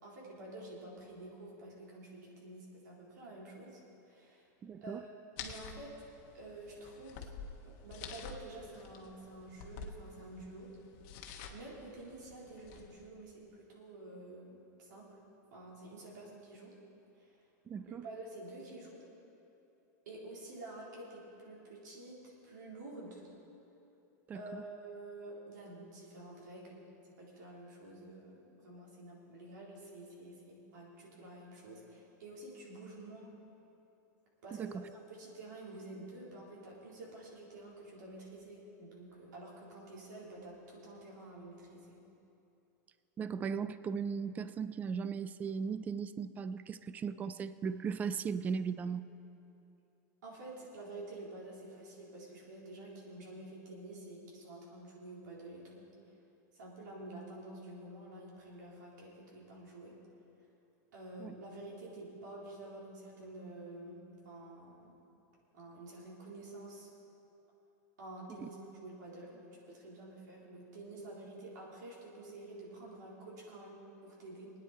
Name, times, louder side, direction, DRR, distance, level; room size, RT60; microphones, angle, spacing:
voice 1, 0.0-3.8 4.1-4.5 4.8-5.1 5.4-5.9 6.3-7.3 7.6-10.7 11.5-15.1 15.5-16.7 17.2-17.4 17.9-19.0 20.1-22.2 22.4-23.2 24.3-26.8 27.2-33.3 34.4-34.8 35.1-42.0 50.2-55.9 56.5-60.0 60.9-64.9 65.5-66.9 68.0-74.5, right 2 dB, 85° right, -4 dB, 3.8 m, -49 dB
voice 2, 4.6-5.0 17.7-18.1 24.3-24.6 34.5-34.8 43.2-49.1 61.2-61.4 68.4-68.5, right 6 dB, 15° right, 14 dB, 0.3 m, -37 dB
sound 1, 5.4-13.1, left 5 dB, 45° left, 1.1 m, -49 dB
21.0 x 9.6 x 4.3 m, 2.9 s
supercardioid pair, 150°, 10 cm